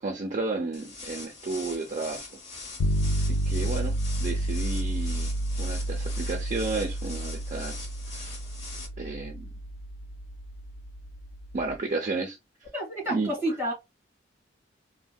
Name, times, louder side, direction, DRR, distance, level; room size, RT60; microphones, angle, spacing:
voice 1, 0.0-2.3 3.2-5.3 5.6-7.9 8.1-8.3 9.0-9.5 11.5-12.4 13.1-13.3, right 3 dB, 40° right, 0.4 m, -32 dB
sound 1, 0.7-8.9, left 3 dB, 35° left, 1.2 m, -43 dB
sound 2, 2.8-11.8, right 1 dB, 75° left, 0.3 m, -30 dB
voice 2, 12.7-13.7, right 1 dB, 15° right, 2.0 m, -29 dB
3.6 x 2.1 x 2.3 m
head